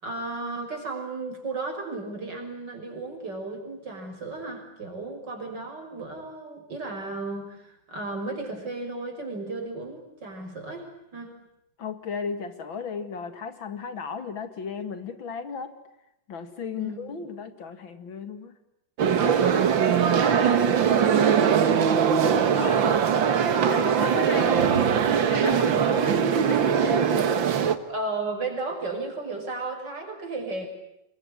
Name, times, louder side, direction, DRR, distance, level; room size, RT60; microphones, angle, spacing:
voice 1, 0.0-11.3 16.8-17.0 19.7-21.8 27.9-30.7, right 3 dB, 65° right, 2 dB, 6.6 m, -34 dB
voice 2, 11.8-15.7 16.3-18.6 22.4-23.0 23.5-27.2, left 5 dB, 85° left, 10 dB, 2.9 m, -35 dB
sound 1, 19.0-27.8, right 7 dB, 80° right, 2.2 m, -21 dB
27.0 x 22.5 x 9.8 m, 0.82 s
omnidirectional pair, 2.1 m